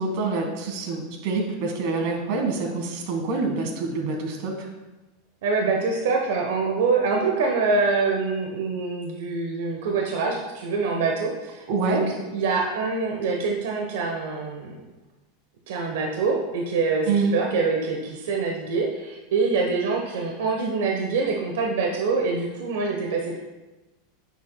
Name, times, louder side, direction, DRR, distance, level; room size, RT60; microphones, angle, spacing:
voice 1, 0.0-4.5 11.7-12.0 17.1-17.3, right 3 dB, 55° right, 2 dB, 1.7 m, -26 dB
voice 2, 5.4-14.8 15.7-23.4, right 4 dB, 80° right, 1 dB, 1.0 m, -25 dB
9.7 x 7.3 x 2.3 m, 1.1 s
supercardioid pair, 160°, 0 cm